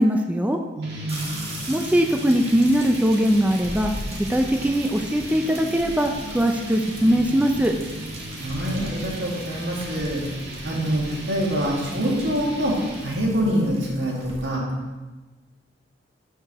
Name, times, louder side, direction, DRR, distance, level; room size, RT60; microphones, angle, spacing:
voice 1, 0.0-0.6 1.7-3.9 4.3-7.7, equal, 10° right, 3 dB, 0.4 m, -21 dB
sound 1, 0.8-13.3, equal, 65° right, 1.6 m, -37 dB
voice 2, 0.8-1.4 8.4-10.2 10.6-12.8 13.0-14.6, equal, 80° right, -3 dB, 1.9 m, -25 dB
sound 2, 1.1-14.5, right 1 dB, 35° right, 1.5 m, -39 dB
12.5 x 4.6 x 2.9 m, 1.2 s
head